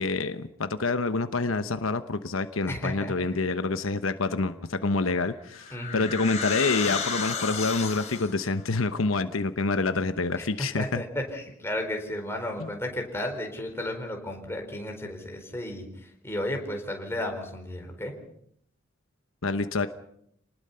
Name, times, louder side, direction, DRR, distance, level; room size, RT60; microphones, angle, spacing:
voice 1, 0.0-11.0 19.4-19.9, left 3 dB, 80° left, 10 dB, 1.0 m, -27 dB
voice 2, 2.7-3.1 5.7-6.1 10.4-10.5 10.8-15.9 16.2-18.1, left 1 dB, 10° left, 2 dB, 4.3 m, -33 dB
sound 1, 5.0-8.5, left 6 dB, 35° left, 4.0 m, -33 dB
28.5 x 19.5 x 5.7 m, 0.70 s
head